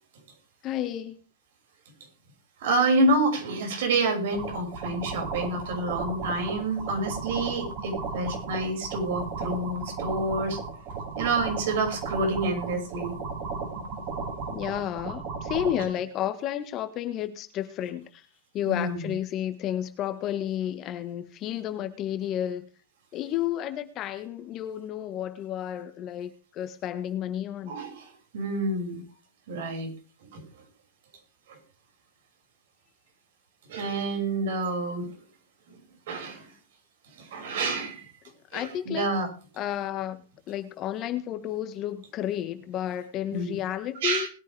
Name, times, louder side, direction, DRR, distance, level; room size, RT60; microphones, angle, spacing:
voice 1, 0.6-1.1 14.5-18.1 18.5-22.7 23.1-26.3 26.6-27.8 38.5-39.1 39.6-40.2 40.5-44.3, left 11 dB, 35° left, 1.5 m, -31 dB
voice 2, 2.6-10.6 11.2-13.1 18.7-19.1 27.7-28.0 28.3-29.0 29.5-29.9 30.3-30.4 33.7-35.1 36.1-36.4 37.3-38.0 38.5-39.3 43.3-43.6 44.0-44.3, right 2 dB, 70° right, 5.9 m, -28 dB
sound 1, 4.3-15.8, right 4 dB, 45° right, 5.6 m, -35 dB
20.5 x 9.3 x 3.4 m
hypercardioid pair, 135°, 0 cm